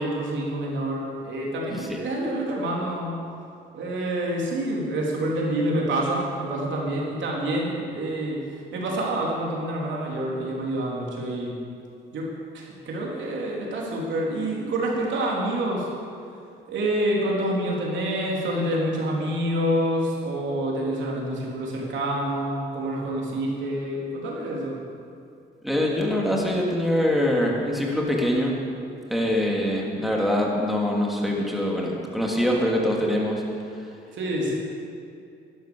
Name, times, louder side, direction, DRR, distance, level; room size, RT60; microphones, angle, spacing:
voice 1, 0.0-3.2 3.7-11.5 12.1-12.3 12.5-15.9 16.7-24.8 34.1-34.6, right 1 dB, 70° right, -3 dB, 3.7 m, -27 dB
voice 2, 1.7-2.0 25.6-28.6 29.1-33.4 33.7-33.9, left 1 dB, ahead, -2 dB, 3.1 m, -24 dB
12.0 x 11.5 x 7.2 m, 2.5 s
cardioid pair, 90°, 20 cm